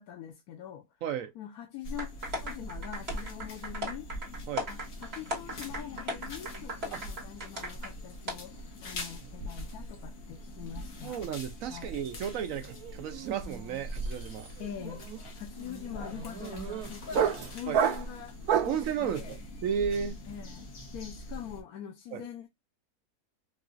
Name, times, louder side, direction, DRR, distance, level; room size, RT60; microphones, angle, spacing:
voice 1, 0.0-0.9 1.3-2.1 2.4-4.1 4.7-11.2 11.7-11.9 14.6-15.0 15.4-18.3 18.6-19.3 20.3-22.5, left 10 dB, 90° left, 1.2 m, -44 dB
voice 2, 1.0-1.3 4.5-4.7 6.9-7.0 11.0-14.5 17.7-17.9 18.7-20.2 22.1-22.2, right 8 dB, 70° right, 0.9 m, -33 dB
sound 1, 1.8-21.6, equal, 65° left, 1.5 m, -42 dB
sound 2, 2.0-7.9 8.3-8.4, equal, 45° right, 1.7 m, -37 dB
sound 3, 12.1-12.4 12.6-18.9, right 8 dB, 90° right, 1.3 m, -32 dB
4.8 x 2.3 x 2.4 m
omnidirectional pair, 1.6 m